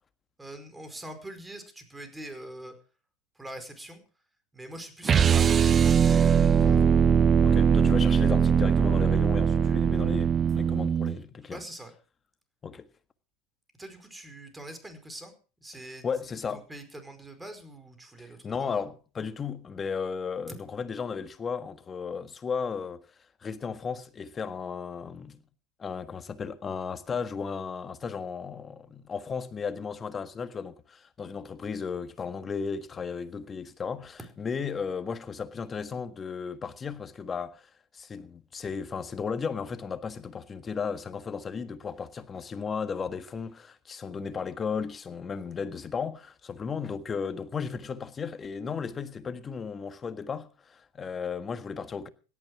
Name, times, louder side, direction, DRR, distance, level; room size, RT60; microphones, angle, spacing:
voice 1, 0.4-2.7 3.3-4.0 4.5-6.8 11.5-11.9 13.8-15.3 15.6-16.2 16.5-18.9 34.2-34.3, right 1 dB, 10° right, 4.9 m, -43 dB
sound 1, 5.0-11.2, right 7 dB, 30° right, 0.8 m, -21 dB
voice 2, 7.4-11.6 12.6-12.9 16.0-16.6 18.2-23.0 23.4-25.4 25.8-52.1, left 6 dB, 25° left, 1.6 m, -35 dB
17.0 x 12.0 x 4.9 m
hypercardioid pair, 95°, 0 cm